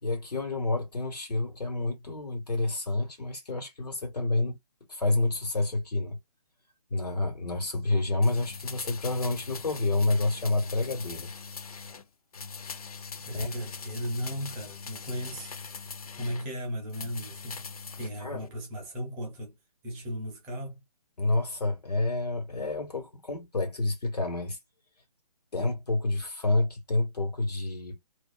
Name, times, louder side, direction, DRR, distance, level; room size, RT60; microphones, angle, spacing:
voice 1, 0.0-4.6 4.9-6.2 6.9-11.3 13.3-13.5 18.2-18.5 21.2-24.6 25.5-28.0, left 2 dB, 85° left, 1.3 m, -29 dB
sound 1, 8.2-12.0 12.3-16.5 16.9-18.1 18.4-18.5, left 5 dB, 70° left, 0.6 m, -42 dB
voice 2, 13.3-15.5 16.2-17.7 18.0-19.6 19.8-20.8, equal, 10° right, 0.4 m, -36 dB
2.5 x 2.2 x 2.3 m
figure-of-eight pair, 145°, 20 cm